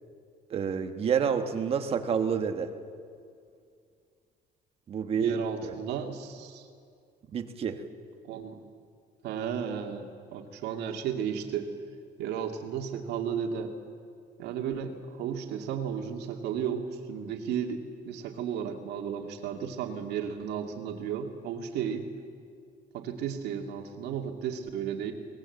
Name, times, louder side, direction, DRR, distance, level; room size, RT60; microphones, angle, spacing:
voice 1, 0.5-2.7 4.9-5.4 5.6-5.7 7.3-7.8, right 7 dB, 35° right, 7 dB, 1.3 m, -28 dB
voice 2, 5.2-6.7 8.2-8.6 9.2-11.7 12.2-13.7 14.4-22.1 22.9-25.1, right 8 dB, 75° right, 3 dB, 2.3 m, -34 dB
23.0 x 19.5 x 8.0 m, 2.3 s
cardioid pair, 175°, 17 cm